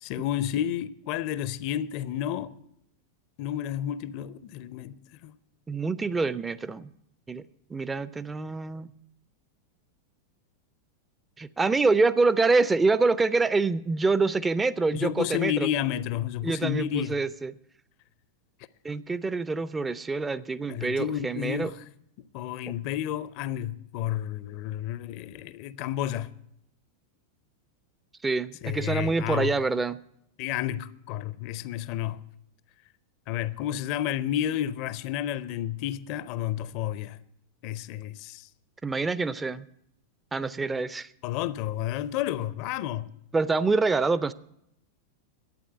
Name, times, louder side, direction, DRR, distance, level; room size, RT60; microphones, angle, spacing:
voice 1, 0.0-2.5 3.4-5.3 14.9-17.2 20.7-21.8 22.3-26.3 28.6-29.5 30.4-32.2 33.3-37.2 37.6-38.5 41.2-43.1, left 11 dB, 45° left, 0.5 m, -31 dB
voice 2, 5.7-6.9 7.3-7.4 7.7-8.9 11.4-15.7 16.4-17.5 18.8-21.7 28.2-30.0 38.8-39.6 40.3-41.1 43.3-44.3, right 3 dB, 15° right, 0.4 m, -26 dB
12.0 x 8.9 x 7.6 m
figure-of-eight pair, 90°, 0 cm